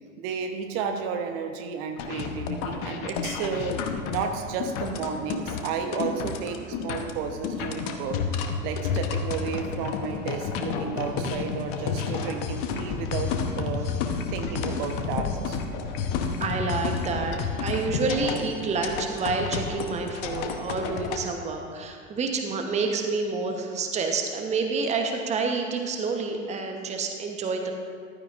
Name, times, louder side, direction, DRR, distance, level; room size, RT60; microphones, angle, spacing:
voice 1, 0.2-8.2 8.6-13.9 14.3-15.6, right 6 dB, 45° right, 5 dB, 1.1 m, -32 dB
sound 1, 2.0-21.2, left 5 dB, 45° left, 1.0 m, -30 dB
voice 2, 16.4-27.7, right 4 dB, 15° right, 3 dB, 1.0 m, -28 dB
14.5 x 12.5 x 2.5 m, 2.1 s
figure-of-eight pair, 90°, 40 cm